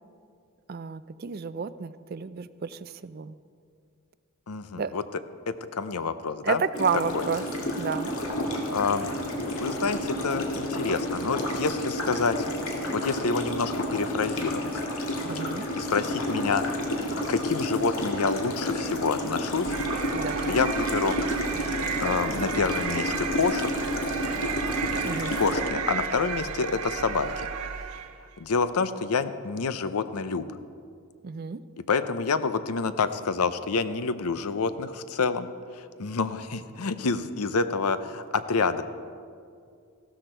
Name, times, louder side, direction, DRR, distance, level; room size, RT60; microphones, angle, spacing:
voice 1, 0.7-3.3 4.8-4.9 6.4-7.4 7.7-8.1 15.3-15.7 20.1-20.5 25.0-25.4 31.2-31.6, right 6 dB, 45° right, 14 dB, 0.4 m, -31 dB
voice 2, 4.5-5.0 5.5-6.6 7.1-7.2 8.7-9.1 9.4-12.5 12.9-14.7 15.4-15.5 15.8-16.6 17.3-19.8 20.5-21.2 22.0-23.7 25.4-27.5 28.4-30.5 31.9-35.5 35.7-38.8, left 4 dB, 85° left, 12 dB, 0.7 m, -28 dB
sound 1, 6.7-25.6, left 1 dB, 70° left, 2.0 m, -30 dB
sound 2, 19.7-28.2, right 7 dB, 85° right, 0.6 m, -33 dB
15.5 x 13.0 x 4.5 m, 2.3 s
head